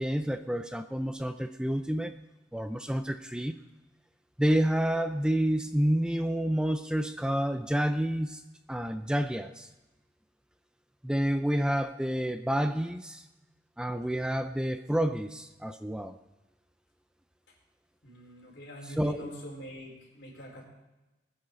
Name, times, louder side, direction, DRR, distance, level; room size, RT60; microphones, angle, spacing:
voice 1, 0.0-2.1 2.5-3.6 4.4-8.4 8.7-9.7 11.0-13.2 13.8-16.2 19.0-19.3, equal, 5° right, 9 dB, 0.4 m, -29 dB
voice 2, 18.0-20.7, equal, 70° left, -2 dB, 4.5 m, -45 dB
20.5 x 9.8 x 3.8 m, 1.0 s
head